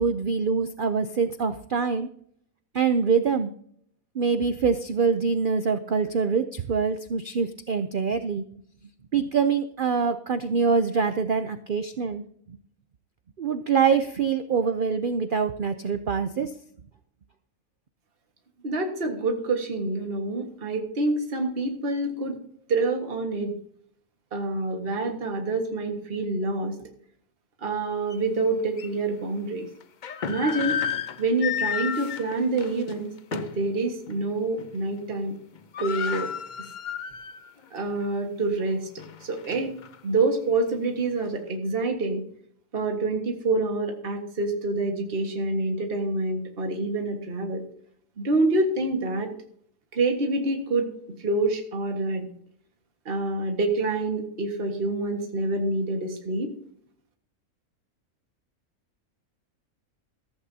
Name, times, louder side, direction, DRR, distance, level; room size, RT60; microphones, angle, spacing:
voice 1, 0.0-2.1 2.7-3.5 4.1-8.4 9.1-12.2 13.4-16.5, right 5 dB, 55° right, 10 dB, 0.5 m, -24 dB
voice 2, 18.6-22.4 22.7-23.5 24.3-26.8 27.6-29.7 30.3-30.8 31.2-35.4 35.8-36.3 37.7-38.9 39.2-39.7 40.0-42.2 42.7-47.6 48.2-49.3 49.9-50.9 51.2-52.3 53.1-56.5, right 2 dB, 40° right, 3 dB, 1.8 m, -27 dB
sound 1, 28.1-28.2 28.8-28.9 29.8-33.7 34.1-34.2 34.6-35.0 35.3-35.4 35.5-37.5 37.9-38.0 38.6-40.0, left 8 dB, 55° left, 0.5 m, -32 dB
14.5 x 14.5 x 2.8 m, 0.64 s
omnidirectional pair, 1.6 m